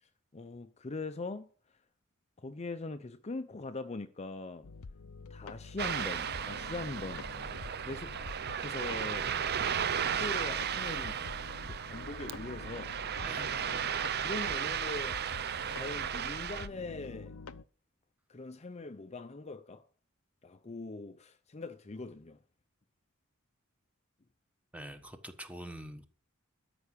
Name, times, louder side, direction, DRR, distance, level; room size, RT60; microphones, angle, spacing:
voice 1, 0.0-1.5 2.4-4.7 5.3-7.3 7.5-8.1 8.6-9.3 10.0-11.2 11.6-13.0 14.2-15.2 15.7-17.4 18.3-19.9 20.4-22.4, left 3 dB, 30° left, 0.6 m, -41 dB
sound 1, 4.6-17.6, left 4 dB, 85° left, 0.6 m, -48 dB
Ocean, 5.8-16.7, right 8 dB, 50° right, 0.6 m, -35 dB
voice 2, 13.2-13.7 24.7-26.0, right 1 dB, 5° right, 1.3 m, -45 dB
13.0 x 6.0 x 8.3 m
head